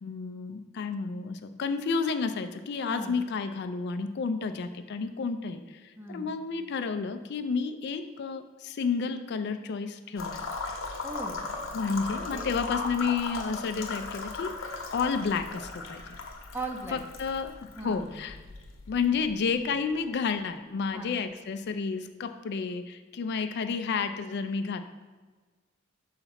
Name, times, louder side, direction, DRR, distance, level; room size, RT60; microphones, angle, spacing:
voice 1, 0.0-10.4 11.7-14.5 14.9-16.1 16.9-18.3 18.9-24.8, left 5 dB, 55° left, 8 dB, 0.4 m, -31 dB
voice 2, 2.9-3.2 6.0-6.3 11.0-11.4 12.3-12.5 16.5-17.0 17.8-18.1 20.9-21.2, right 2 dB, 10° right, 2 dB, 0.8 m, -38 dB
sound 1, 10.2-19.9, left 3 dB, 80° left, 0.9 m, -38 dB
5.7 x 4.0 x 5.7 m, 1.4 s
head